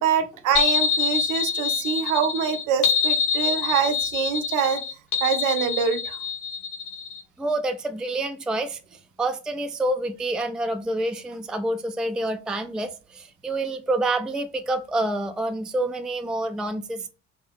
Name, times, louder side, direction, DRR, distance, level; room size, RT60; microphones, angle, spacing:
voice 1, 0.0-4.8 5.2-6.2, right 7 dB, 65° right, 0.6 m, -25 dB
sound 1, 0.6-7.2, left 6 dB, 70° left, 0.7 m, -25 dB
voice 2, 7.4-17.1, right 2 dB, ahead, 0.4 m, -27 dB
3.6 x 2.6 x 3.4 m
hypercardioid pair, 50°, 34 cm